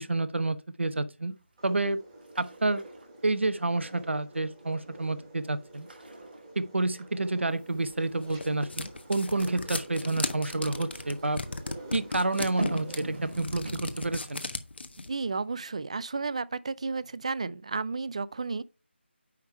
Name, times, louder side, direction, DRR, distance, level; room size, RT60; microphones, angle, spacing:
voice 1, 0.0-1.3 1.6-2.0 2.4-2.8 3.2-5.9 6.6-11.4 11.9-14.4, right 2 dB, 75° right, 0.8 m, -29 dB
sound 1, 1.6-13.5, right 2 dB, 15° right, 2.0 m, -48 dB
sound 2, 1.6-1.9 2.2-3.9 4.3-4.8 5.2-5.4 5.7-7.6 9.2-11.1 12.4-14.6 15.0-15.1, right 1 dB, 55° right, 2.4 m, -39 dB
sound 3, 7.8-15.1, left 3 dB, 60° left, 1.0 m, -36 dB
voice 2, 15.1-18.6, right 4 dB, 30° right, 0.4 m, -32 dB
9.4 x 3.6 x 4.4 m
figure-of-eight pair, 170°, 6 cm